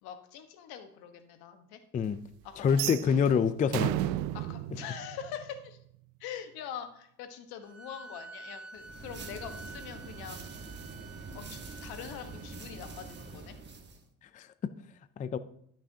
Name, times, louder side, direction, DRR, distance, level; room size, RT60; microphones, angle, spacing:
voice 1, 0.0-1.8 2.4-2.9 4.3-5.8 6.2-10.5 11.3-13.6, left 8 dB, 75° left, 7 dB, 1.2 m, -43 dB
voice 2, 2.6-4.1 14.3-14.5 15.2-15.4, left 6 dB, 25° left, 13 dB, 0.4 m, -26 dB
sound 1, 2.7-5.8, right 15 dB, 70° right, 0.5 m, -34 dB
sound 2, 7.6-13.3, right 3 dB, ahead, 2.5 m, -50 dB
sound 3, 8.8-14.0, right 3 dB, 30° right, 1.2 m, -45 dB
12.5 x 6.0 x 2.8 m, 0.68 s
supercardioid pair, 100°, 37 cm